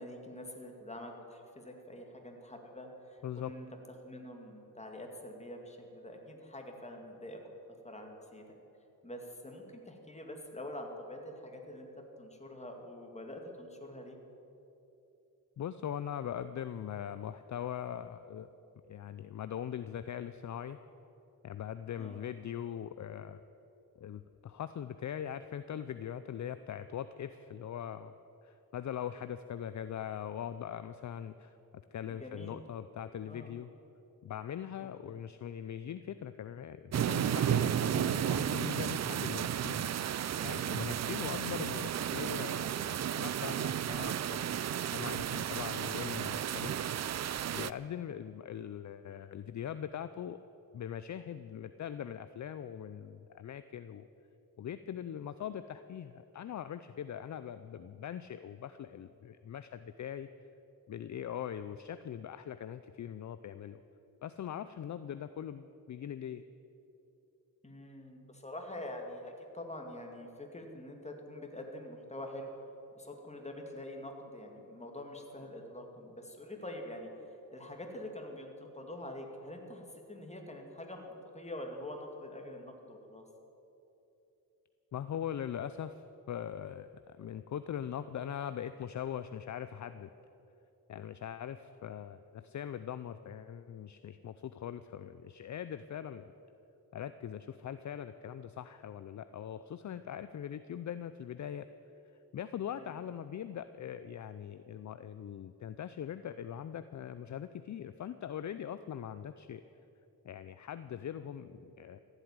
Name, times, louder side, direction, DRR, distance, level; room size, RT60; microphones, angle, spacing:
voice 1, 0.0-3.6 4.0-7.4 7.6-8.4 9.0-11.9 12.2-14.2 22.0-22.3 32.1-32.6 33.2-33.5 34.8-35.2 67.6-72.5 72.9-83.2 102.7-103.0, left 1 dB, 20° left, 2 dB, 2.3 m, -45 dB
voice 2, 15.6-18.5 18.9-20.8 21.4-23.4 24.0-28.1 28.4-31.6 31.9-33.7 34.2-44.6 44.9-46.7 47.1-50.4 50.7-54.1 54.6-60.3 60.9-63.8 64.2-66.4 84.9-90.1 90.9-96.2 96.9-101.7 102.3-109.6 110.2-112.0, left 9 dB, 50° left, 12 dB, 0.5 m, -41 dB
sound 1, 36.9-47.7, right 10 dB, 50° right, 0.4 m, -33 dB
15.0 x 8.1 x 9.7 m, 2.9 s
cardioid pair, 85°, 36 cm